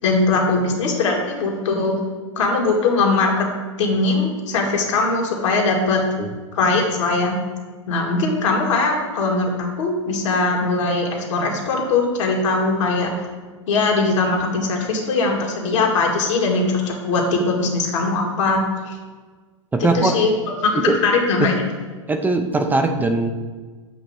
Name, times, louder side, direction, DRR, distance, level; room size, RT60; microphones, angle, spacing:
voice 1, 0.0-2.0 2.4-3.5 3.8-6.0 6.5-7.4 7.9-13.3 13.7-19.0 19.8-21.5, left 3 dB, 65° left, 0 dB, 1.9 m, -20 dB
voice 2, 19.7-20.2 20.9-21.0 22.1-23.3, right 3 dB, 10° right, 6 dB, 0.5 m, -20 dB
8.0 x 3.0 x 6.2 m, 1.4 s
hypercardioid pair, 110°, 17 cm